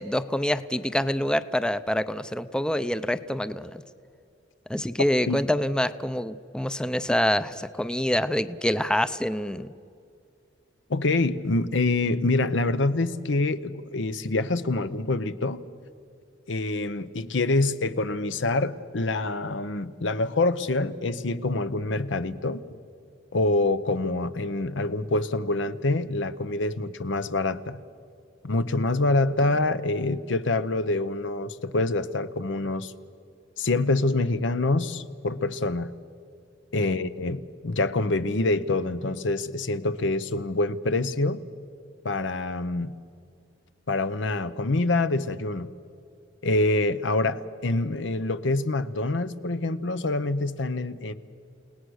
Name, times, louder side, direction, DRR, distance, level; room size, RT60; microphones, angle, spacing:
voice 1, 0.0-3.8 4.7-9.7, left 1 dB, 5° left, 13 dB, 0.5 m, -26 dB
voice 2, 10.9-15.6 16.5-22.6 23.3-27.8 28.4-32.9 33.6-35.9 36.7-41.4 42.0-42.9 43.9-45.7 46.4-51.1, left 2 dB, 80° left, 12 dB, 0.9 m, -26 dB
30.0 x 18.0 x 6.4 m, 2.4 s
head